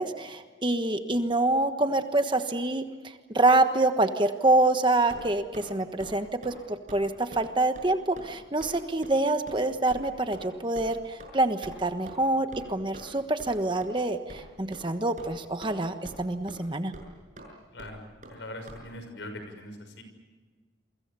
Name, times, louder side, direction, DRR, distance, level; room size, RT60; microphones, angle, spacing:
voice 1, 0.0-2.8 3.3-16.9, right 2 dB, 25° right, 7 dB, 1.3 m, -26 dB
sound 1, 5.1-5.7 6.0-6.2 6.4-6.6 6.9-7.0 7.3-7.5 7.8-7.9 8.2-8.3 8.6-8.8 9.0-9.1 9.5-9.6 9.9-10.0 10.3-10.5 10.8-10.9 11.2-11.3 11.6-11.7 12.1-12.2 12.5-12.7 12.9-13.1 13.4-13.5 13.8-13.9 14.3-14.4 14.7-14.9 15.2-15.7 16.0-16.2 16.5-16.6 16.9-17.1 17.4-17.5 17.8-17.9 18.2-18.4 18.7-18.8, right 1 dB, 40° right, 6.7 m, -44 dB
voice 2, 17.7-18.0 18.3-20.0, left 1 dB, 70° left, 7 dB, 6.4 m, -41 dB
29.0 x 24.5 x 6.9 m, 1.4 s
head